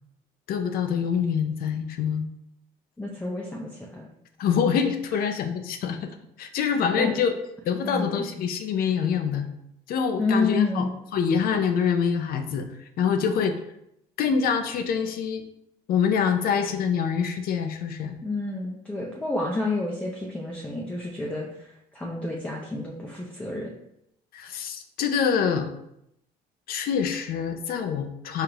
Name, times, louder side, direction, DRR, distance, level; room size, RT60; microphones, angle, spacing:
voice 1, 0.5-2.3 4.4-6.1 6.4-7.3 7.7-9.5 9.9-10.9 11.1-13.6 14.2-15.5 15.9-18.2 24.3-25.7 26.7-28.4, left 7 dB, 60° left, 7 dB, 0.4 m, -25 dB
voice 2, 3.0-4.1 7.0-7.1 7.8-8.3 10.2-10.9 18.2-23.7, left 3 dB, 10° left, -2 dB, 0.5 m, -29 dB
4.7 x 2.4 x 2.9 m, 0.78 s
cardioid pair, 110°, 17 cm